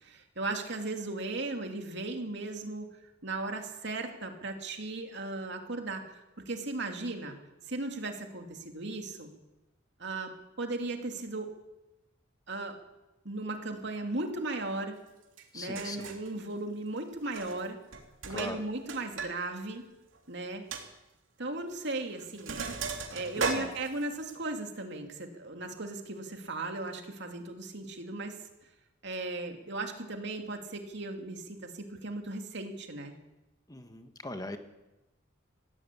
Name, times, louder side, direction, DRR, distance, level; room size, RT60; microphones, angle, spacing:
voice 1, 0.0-2.9 3.2-7.4 7.7-9.3 10.0-11.5 12.5-12.8 13.2-15.0 15.5-17.8 18.2-19.9 20.3-20.6 21.4-22.6 23.1-28.4 29.0-33.1, right 2 dB, 60° right, 4 dB, 2.8 m, -37 dB
Sink (filling or washing), 15.4-15.5 15.7-16.3 17.2-17.7 17.9-19.3 19.6-19.7 20.1-20.2 20.7-20.8 21.7-21.9 22.2-24.3, right 4 dB, 80° right, 2.8 m, -36 dB
voice 2, 15.5-16.2 18.3-18.6 23.4-23.7 33.7-34.6, left 2 dB, 20° left, 7 dB, 1.4 m, -40 dB
20.5 x 15.5 x 8.7 m, 1.0 s
head